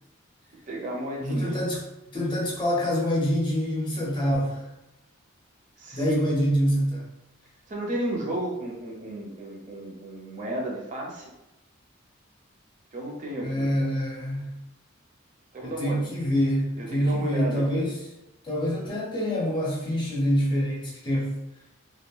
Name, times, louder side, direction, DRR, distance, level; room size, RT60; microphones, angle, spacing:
voice 1, 0.7-1.6 5.8-6.2 7.7-11.3 12.9-13.9 15.5-16.0 16.8-17.9, right 1 dB, 40° right, -2 dB, 0.5 m, -33 dB
voice 2, 1.2-1.8 2.1-4.6 5.9-7.0 13.4-14.5 15.6-17.9 18.4-21.4, equal, 20° left, -3 dB, 0.5 m, -26 dB
2.9 x 2.1 x 2.3 m, 0.96 s
head